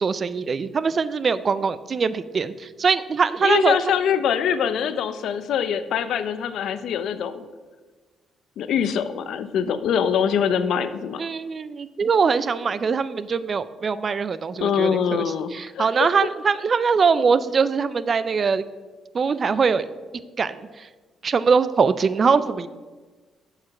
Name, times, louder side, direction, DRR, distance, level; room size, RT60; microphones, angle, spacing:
voice 1, 0.0-3.7 11.2-18.6 19.1-19.8 20.4-20.9 21.2-22.7, right 5 dB, 40° right, 15 dB, 0.4 m, -22 dB
voice 2, 3.4-7.4 8.6-11.2 14.6-15.5 15.8-16.1, left 7 dB, 75° left, 12 dB, 0.5 m, -23 dB
7.5 x 4.8 x 5.9 m, 1.3 s
cardioid pair, 90°, 0 cm